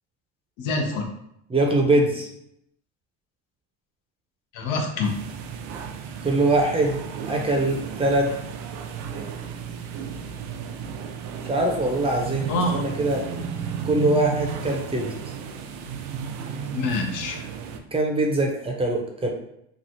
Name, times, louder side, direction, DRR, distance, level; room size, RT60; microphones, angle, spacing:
voice 1, 0.6-1.1 4.5-5.1 12.5-12.8 16.7-17.4, left 2 dB, 70° left, 2 dB, 0.8 m, -26 dB
voice 2, 1.5-2.3 6.2-7.0 7.3-8.3 11.4-13.2 13.8-15.3 17.9-19.3, right 2 dB, 15° right, 1 dB, 0.6 m, -23 dB
sound 1, 5.0-17.8, right 6 dB, 75° right, 0.5 m, -34 dB
3.1 x 2.3 x 2.7 m, 0.77 s
supercardioid pair, 90°, 32 cm